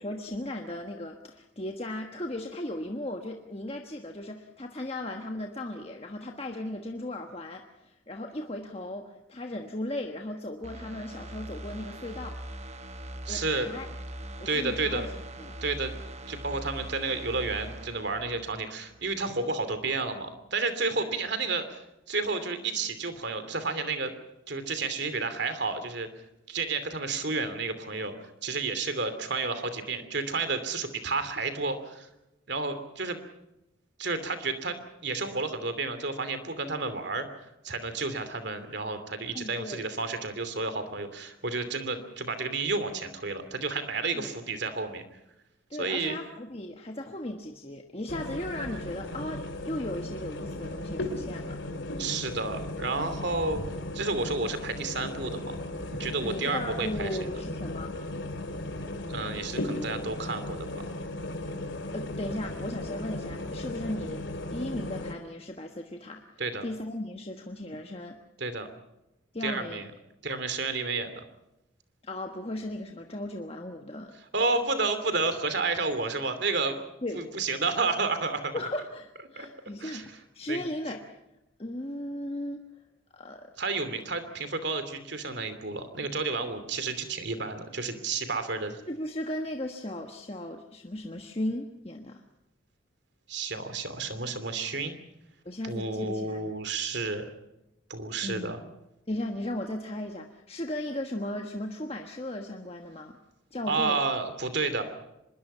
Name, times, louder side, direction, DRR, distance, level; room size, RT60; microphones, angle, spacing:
voice 1, 0.0-12.4 13.3-13.9 14.4-15.1 15.4-15.6 39.3-39.8 44.1-44.4 45.7-51.6 56.2-57.9 61.9-64.2 64.5-68.2 69.3-69.8 72.0-74.1 77.0-77.3 78.5-81.2 81.6-82.6 83.1-83.5 88.9-92.2 95.4-96.5 98.2-98.7 99.1-103.2 103.5-104.0, left 1 dB, 30° left, 3 dB, 1.3 m, -36 dB
sound 1, 10.6-19.3 19.7-19.8, right 1 dB, 35° right, 1.3 m, -41 dB
voice 2, 13.2-13.7 14.4-15.1 15.6-15.9 16.3-24.1 24.5-26.1 26.5-32.1 32.5-33.2 34.0-34.8 35.0-37.3 37.6-45.0 45.8-46.2 52.0-53.6 53.9-55.6 55.9-57.1 59.1-60.8 66.4-66.6 68.4-68.7 69.4-69.9 70.2-71.2 74.3-76.8 77.1-78.6 79.4-79.5 79.8-80.1 80.5-80.6 83.6-88.8 93.3-94.9 95.6-97.2 97.9-98.6 103.7-104.8, right 3 dB, 60° right, 10 dB, 2.8 m, -31 dB
sound 2, 48.1-65.1, left 1 dB, 70° left, 2.9 m, -36 dB
25.0 x 22.0 x 5.6 m, 0.89 s
head